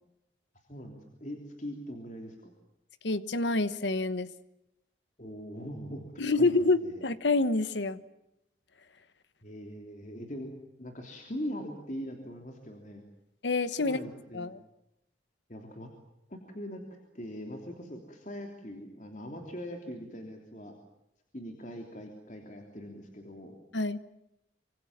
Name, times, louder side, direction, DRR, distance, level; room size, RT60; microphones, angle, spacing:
voice 1, 0.7-2.5 5.2-6.5 6.8-7.0 9.4-10.5 10.8-13.0 13.8-14.5 15.5-15.9 16.3-16.8 17.1-20.7 21.3-23.6, equal, 40° left, 3 dB, 3.3 m, -41 dB
voice 2, 3.0-4.3 6.2-8.0 13.4-14.0 14.3-14.6 23.7-24.0, left 3 dB, 80° left, 14 dB, 1.2 m, -27 dB
26.0 x 25.0 x 7.4 m, 0.84 s
head